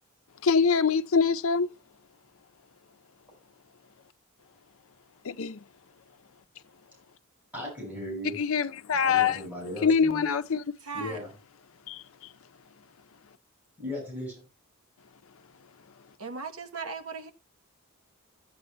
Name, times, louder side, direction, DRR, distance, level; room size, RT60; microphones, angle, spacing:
voice 1, 0.4-1.7 5.2-5.6 8.3-9.4 9.8-10.8 11.9-12.0, left 5 dB, 65° left, 0.5 m, -24 dB
voice 2, 7.5-8.4 9.0-10.2 10.9-11.3 13.8-14.4, left 1 dB, 5° right, 5.6 m, -37 dB
voice 3, 10.8-11.2 16.2-17.3, right 4 dB, 65° right, 1.0 m, -37 dB
15.0 x 8.5 x 2.2 m
head